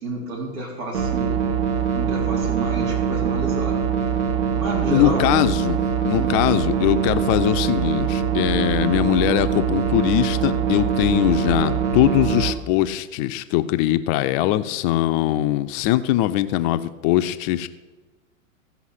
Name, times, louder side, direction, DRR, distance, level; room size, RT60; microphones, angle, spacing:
voice 1, 0.0-1.4 1.9-3.8 4.5-5.3 6.1-6.4, right 2 dB, 70° right, -1 dB, 4.0 m, -30 dB
sound 1, 0.9-12.5, right 7 dB, 55° right, 1.6 m, -23 dB
voice 2, 4.9-17.7, left 14 dB, 35° left, 11 dB, 0.6 m, -21 dB
15.0 x 5.8 x 5.8 m, 1.2 s
hypercardioid pair, 110°, 41 cm